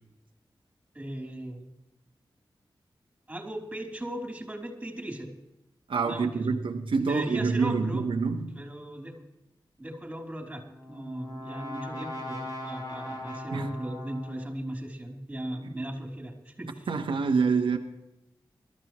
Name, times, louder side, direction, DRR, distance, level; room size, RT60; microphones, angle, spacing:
voice 1, 0.9-1.6 3.3-5.3 6.0-6.5 7.0-8.0 8.5-9.2 9.8-10.6 10.9-16.9, right 1 dB, 15° right, 1 dB, 3.5 m, -37 dB
voice 2, 5.9-8.6 13.5-13.7 16.9-17.8, right 4 dB, 90° right, 4 dB, 1.2 m, -26 dB
Brass instrument, 10.5-14.6, left 1 dB, 50° left, 6.1 m, -39 dB
21.5 x 13.5 x 3.1 m, 0.88 s
wide cardioid pair, 140°, 8 cm